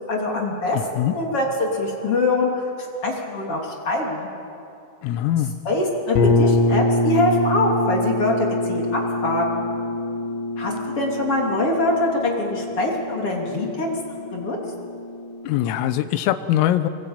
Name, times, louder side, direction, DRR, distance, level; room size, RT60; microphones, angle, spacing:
voice 1, 0.1-4.3 5.6-9.6 10.6-14.6, left 2 dB, 35° left, -1 dB, 3.1 m, -24 dB
voice 2, 0.7-1.1 5.0-5.6 15.5-16.9, left 12 dB, 85° left, 11 dB, 3.6 m, -22 dB
sound 1, 6.2-15.8, left 1 dB, 65° left, 3.8 m, -25 dB
24.5 x 21.5 x 8.9 m, 2.7 s
omnidirectional pair, 5.8 m